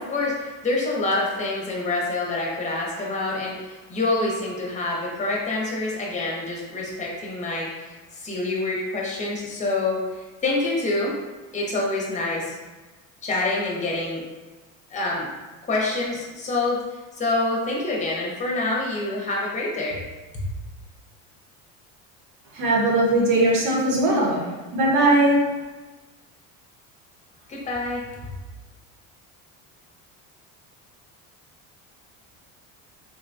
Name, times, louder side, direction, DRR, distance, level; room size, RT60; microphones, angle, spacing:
voice 1, 0.0-11.1 11.5-12.5 13.2-14.2 14.9-15.3 15.6-16.8 17.1-20.0 20.3-20.4 27.5-28.3, left 2 dB, 20° left, -3 dB, 0.7 m, -26 dB
voice 2, 22.5-24.4 24.7-25.4, right 1 dB, 75° right, -2 dB, 1.0 m, -19 dB
3.8 x 2.2 x 2.5 m, 1.2 s
cardioid pair, 135°, 38 cm